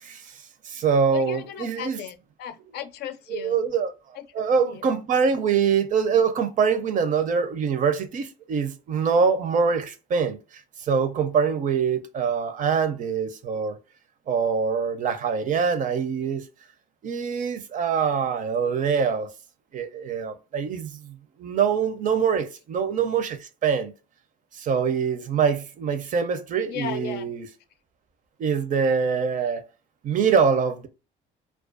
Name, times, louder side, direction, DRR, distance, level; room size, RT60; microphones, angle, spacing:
voice 1, 0.0-2.0 3.3-3.9 4.3-10.4 10.8-13.8 14.3-16.5 17.0-19.3 19.7-23.9 24.5-27.5 28.4-29.7 30.0-30.9, right 6 dB, 50° right, 0.5 m, -24 dB
voice 2, 1.1-3.6 4.1-4.3 4.6-4.8 26.7-27.3, left 9 dB, 75° left, 0.4 m, -36 dB
2.4 x 2.2 x 2.4 m
cardioid pair, 110°, 17 cm